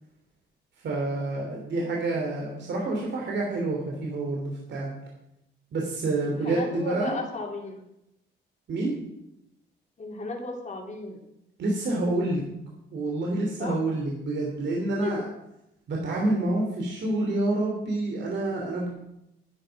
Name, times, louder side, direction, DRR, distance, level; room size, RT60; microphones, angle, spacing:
voice 1, 0.8-4.9 5.7-7.2 8.7-8.9 11.6-12.4 12.9-15.2 15.9-18.9, right 2 dB, 65° right, -1 dB, 3.0 m, -28 dB
voice 2, 1.8-2.1 6.2-7.8 10.0-11.2 13.6-13.8 15.0-15.1, left 3 dB, 35° left, 1 dB, 3.0 m, -35 dB
11.0 x 10.0 x 5.9 m, 0.84 s
cardioid pair, 90°, 20 cm